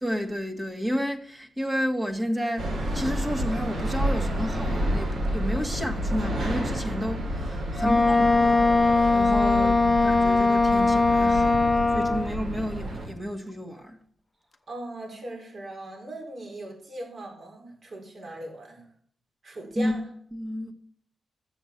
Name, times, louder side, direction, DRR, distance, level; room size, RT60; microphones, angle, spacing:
voice 1, 0.0-8.7 9.1-11.6 11.9-14.0 19.8-19.9 20.3-20.7, equal, 20° right, 2.0 m, -31 dB
sound 1, 2.6-13.1, equal, 80° right, 7.4 m, -30 dB
voice 2, 7.7-8.0 9.6-9.7 14.7-18.8 19.4-20.0, right 1 dB, 55° right, 5.0 m, -39 dB
Wind instrument woodwind instrument, 7.8-12.3, left 3 dB, 20° left, 0.9 m, -21 dB
13.5 x 7.8 x 7.5 m
cardioid pair, 105°, 0 cm